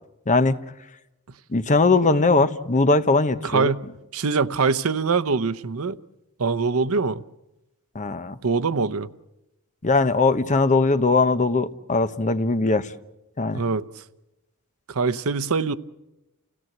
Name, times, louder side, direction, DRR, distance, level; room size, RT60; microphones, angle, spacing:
voice 1, 0.3-0.6 1.5-3.7 7.9-8.3 9.8-12.9 13.4-13.6, left 3 dB, 35° left, 0.9 m, -20 dB
voice 2, 3.4-3.8 4.1-6.0 6.4-7.2 8.4-9.1 13.5-13.8 14.9-15.7, right 4 dB, 80° right, 0.8 m, -23 dB
30.0 x 17.0 x 7.9 m
head